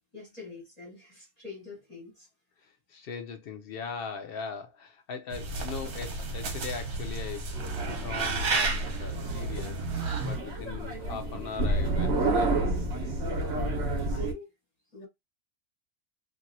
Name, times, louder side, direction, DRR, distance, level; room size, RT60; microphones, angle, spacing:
voice 1, 0.1-2.3 5.3-5.4 10.4-10.6 13.4-13.6 13.9-14.5 14.9-15.1, left 4 dB, 30° left, 1.0 m, -46 dB
voice 2, 2.6-7.5 7.9-9.8 10.2-12.6, left 5 dB, 85° left, 0.5 m, -40 dB
sound 1, 5.3-10.4, right 3 dB, 75° right, 1.4 m, -32 dB
sound 2, 7.5-14.3, right 2 dB, 50° right, 1.1 m, -30 dB
2.9 x 2.6 x 2.6 m
omnidirectional pair, 1.6 m